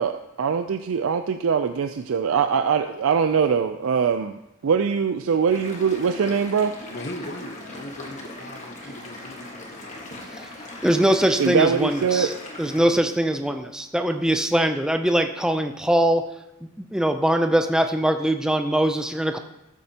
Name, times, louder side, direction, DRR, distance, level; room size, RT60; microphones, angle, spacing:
voice 1, 0.0-6.7 11.4-12.3, right 6 dB, 70° right, 8 dB, 0.4 m, -22 dB
sound 1, 5.5-12.8, left 1 dB, 35° left, 1.6 m, -39 dB
voice 2, 6.9-10.0 12.8-13.2, left 1 dB, 50° left, 4 dB, 1.0 m, -39 dB
voice 3, 10.8-12.3 12.6-16.2 16.9-19.4, right 1 dB, 5° right, 6 dB, 0.4 m, -22 dB
13.0 x 8.3 x 2.9 m, 0.90 s
head